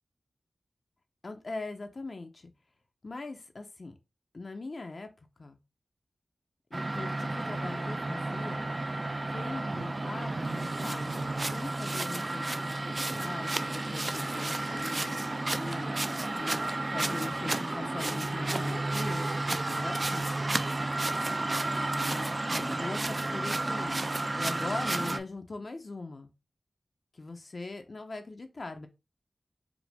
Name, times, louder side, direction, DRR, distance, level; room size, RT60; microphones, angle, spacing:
voice 1, 1.2-2.5 3.0-4.0 4.3-5.1 5.4-5.6 6.7-8.7 9.3-16.6 16.9-19.3 19.6-20.5 21.8-24.0 24.4-26.3 27.1-28.9, left 3 dB, 50° left, 6 dB, 0.5 m, -41 dB
sound 1, 6.7-25.2, right 2 dB, 35° right, 0.3 m, -32 dB
4.9 x 2.0 x 3.3 m, 0.26 s
wide cardioid pair, 100°, 0 cm